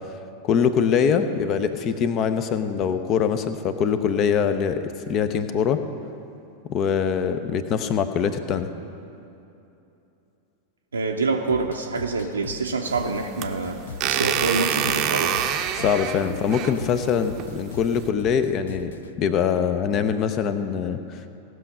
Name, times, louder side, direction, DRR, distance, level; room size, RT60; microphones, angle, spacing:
voice 1, 0.4-4.8 5.1-5.8 6.7-8.7 15.7-18.9 19.2-21.2, left 7 dB, 35° left, 10 dB, 0.7 m, -23 dB
voice 2, 10.9-15.4, right 3 dB, 75° right, 1 dB, 0.6 m, -26 dB
sound 1, 11.5-19.2, left 6 dB, 65° left, 0.5 m, -40 dB
sound 2, 12.9-18.1, right 9 dB, 35° right, 0.7 m, -27 dB
17.5 x 6.3 x 5.5 m, 2.8 s
figure-of-eight pair, 90°, 0 cm